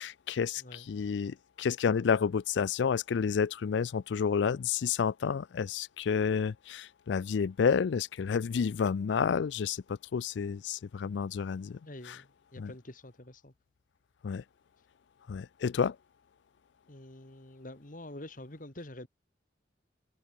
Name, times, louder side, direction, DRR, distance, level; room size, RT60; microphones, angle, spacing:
voice 1, 0.0-11.8 12.1-12.2 12.6-12.7 14.2-14.4 15.3-16.0, left 6 dB, 70° left, 0.4 m, -30 dB
voice 2, 0.6-1.1 11.9-13.5 16.9-19.1, left 1 dB, 45° left, 2.5 m, -47 dB
head